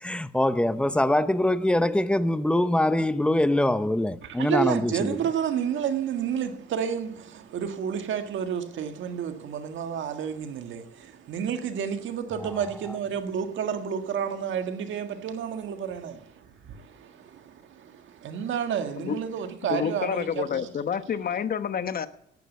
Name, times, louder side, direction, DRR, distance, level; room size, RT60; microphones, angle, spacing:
voice 1, 0.0-5.2, left 1 dB, 5° left, 0.8 m, -23 dB
voice 2, 4.2-20.7, right 8 dB, 75° right, 1.7 m, -30 dB
voice 3, 19.7-22.1, left 7 dB, 50° left, 1.1 m, -28 dB
11.5 x 9.2 x 8.1 m
cardioid pair, 90°, 20 cm